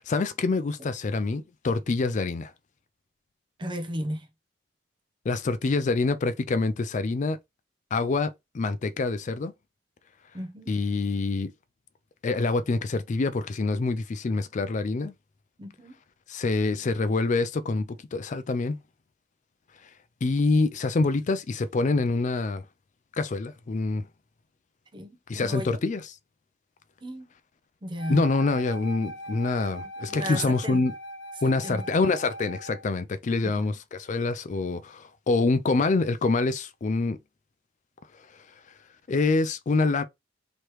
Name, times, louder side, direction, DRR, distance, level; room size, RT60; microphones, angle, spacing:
voice 1, 0.0-2.5 5.3-7.4 7.9-9.5 10.7-11.5 12.2-15.1 16.3-18.8 20.2-22.6 23.2-24.0 25.3-26.1 28.1-30.9 31.4-37.2 38.3-38.4 39.1-40.0, left 3 dB, 40° left, 0.4 m, -26 dB
voice 2, 3.6-4.3 10.3-10.7 15.6-15.9 24.9-25.8 27.0-27.3 27.8-28.3 30.1-30.8 31.6-31.9 33.4-33.7, equal, 25° right, 0.7 m, -34 dB
Wind instrument woodwind instrument, 28.0-32.9, equal, 75° left, 1.1 m, -40 dB
3.1 x 3.1 x 4.5 m
head